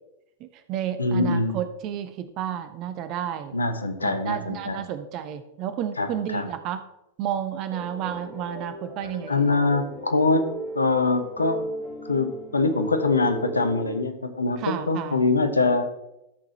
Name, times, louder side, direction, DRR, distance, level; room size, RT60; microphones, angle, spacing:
voice 1, 0.4-3.6 4.0-6.8 7.2-9.5 14.6-15.2, right 10 dB, 40° right, 10 dB, 1.0 m, -31 dB
voice 2, 1.0-1.6 3.5-4.8 6.0-6.5 9.3-10.5 10.7-11.6 12.1-15.9, left 3 dB, 80° left, 9 dB, 1.1 m, -23 dB
sound 1, 7.7-14.0, equal, 25° left, 4.0 m, -36 dB
13.0 x 6.4 x 4.3 m, 0.87 s
figure-of-eight pair, 90°, 0 cm